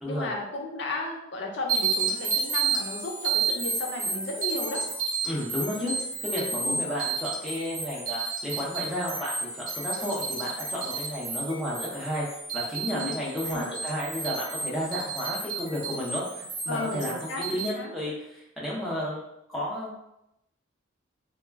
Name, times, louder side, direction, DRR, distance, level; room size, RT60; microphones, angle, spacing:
voice 1, 0.1-4.8 6.6-6.8 12.9-13.2 13.5-13.7 16.7-17.9, left 2 dB, 60° left, 1 dB, 0.5 m, -34 dB
sound 1, 1.7-17.7, right 4 dB, 80° right, 0.9 m, -32 dB
voice 2, 5.2-5.9 6.2-20.0, equal, ahead, -7 dB, 0.6 m, -32 dB
2.2 x 2.1 x 3.4 m, 0.83 s
head